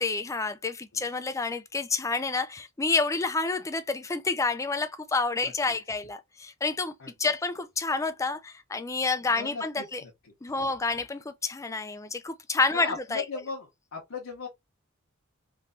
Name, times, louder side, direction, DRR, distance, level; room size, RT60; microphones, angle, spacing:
voice 1, 0.0-6.9 7.2-10.0 10.4-13.2, left 3 dB, 15° left, 0.4 m, -29 dB
voice 2, 5.4-5.7 7.0-7.1 9.3-10.1 12.8-14.5, left 5 dB, 65° left, 0.9 m, -38 dB
3.3 x 3.1 x 2.6 m
head